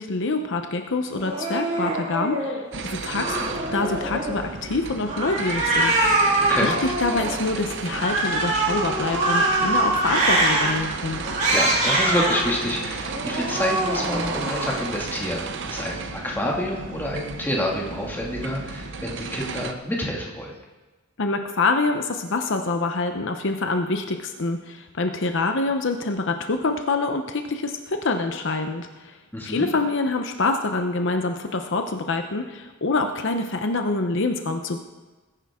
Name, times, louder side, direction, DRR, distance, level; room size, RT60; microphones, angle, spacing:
voice 1, 0.0-3.4 3.7-6.0 6.6-11.2 21.2-29.2 29.4-34.8, left 3 dB, 60° left, 6 dB, 0.8 m, -26 dB
Cat, 1.1-2.6 3.1-4.4 5.1-7.3 7.9-10.7 11.2-12.5 13.0-14.8, right 2 dB, 35° right, 3.4 m, -24 dB
sound 1, 2.7-19.7, right 4 dB, 60° right, 0.9 m, -33 dB
voice 2, 11.5-20.5 29.3-29.7, left 1 dB, 10° left, -2 dB, 2.2 m, -28 dB
20.5 x 10.5 x 3.7 m, 1.2 s
head